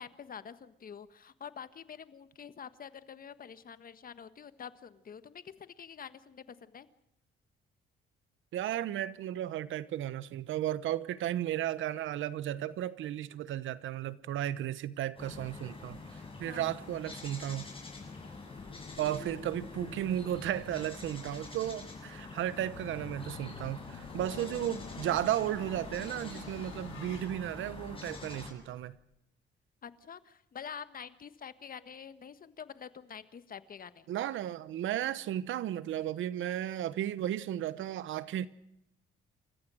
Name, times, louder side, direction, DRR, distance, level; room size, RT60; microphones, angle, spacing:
voice 1, 0.0-6.9 16.5-16.7 18.1-18.4 29.8-34.1, left 7 dB, 45° left, 1.5 m, -47 dB
voice 2, 8.5-17.7 19.0-28.9 34.1-38.5, right 12 dB, 80° right, 1.1 m, -34 dB
sound 1, 15.2-28.5, left 3 dB, 25° left, 7.1 m, -46 dB
Tick-tock, 17.2-17.3 18.2-18.5 19.2-19.5 20.2-20.3 20.6-20.7 21.2-21.3 22.2-22.3 23.2-23.3 24.2-24.3 25.2-25.3 26.2-26.3, left 7 dB, 65° left, 5.8 m, -59 dB
sound 2, 18.5-29.0, left 7 dB, 85° left, 5.4 m, -50 dB
29.0 x 15.0 x 6.4 m
cardioid pair, 90°, 20 cm